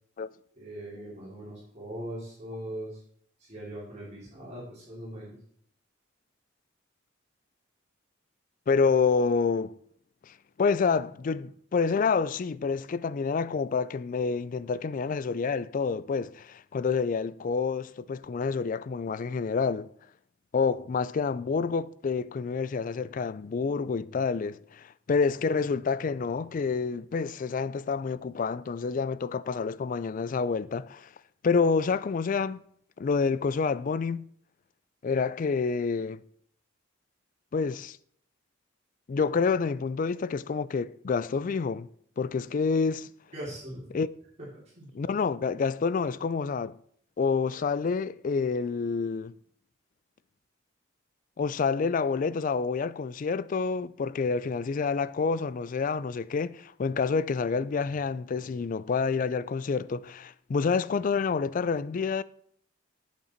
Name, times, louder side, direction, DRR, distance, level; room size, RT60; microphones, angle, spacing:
voice 1, 0.6-3.0 3.4-5.4 43.3-44.0 44.7-44.9, right 1 dB, 35° right, 3.1 m, -40 dB
voice 2, 8.7-9.8 10.3-19.9 20.5-31.1 31.4-32.6 33.0-34.3 35.0-36.2 37.5-38.0 39.1-41.9 42.2-43.1 43.9-44.1 44.9-46.8 47.2-49.3 51.4-62.2, left 5 dB, 40° left, 0.3 m, -28 dB
8.4 x 8.3 x 4.4 m
head